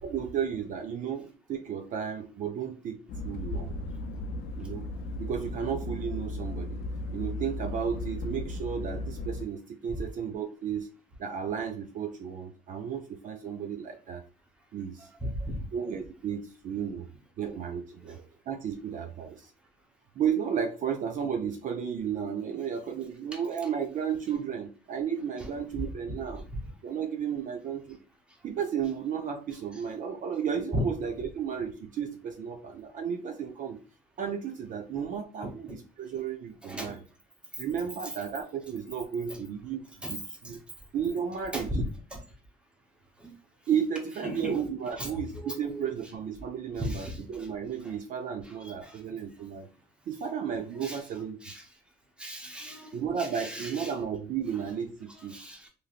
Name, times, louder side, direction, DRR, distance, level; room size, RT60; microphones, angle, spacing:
voice 1, 0.0-3.8 4.6-4.9 5.2-6.8 7.1-10.9 11.2-14.2 14.7-15.1 15.7-17.1 17.4-18.2 18.5-19.5 20.2-26.4 26.8-28.0 28.4-33.8 34.2-37.0 37.6-40.6 40.9-41.7 43.7-49.7 50.1-51.4 52.9-55.4, right 7 dB, 50° right, 5 dB, 0.4 m, -33 dB
sound 1, 3.1-9.4, left 2 dB, 70° left, 0.5 m, -36 dB
voice 2, 15.2-15.6 17.4-17.6 18.1-18.2 23.3-23.4 25.4-25.8 29.7-29.8 30.7-30.8 35.4-35.8 36.6-37.0 39.3-39.4 40.0-40.2 40.4-40.6 41.5-41.8 42.1-42.2 43.2-43.3 44.2-44.6 44.9-46.0 46.8-47.5 47.8-48.0 48.4-49.0 50.7-51.0 51.4-51.7 52.2-53.9 55.2-55.7, equal, 5° right, 1 dB, 0.8 m, -37 dB
3.0 x 2.6 x 2.4 m, 0.36 s
cardioid pair, 110°, 17 cm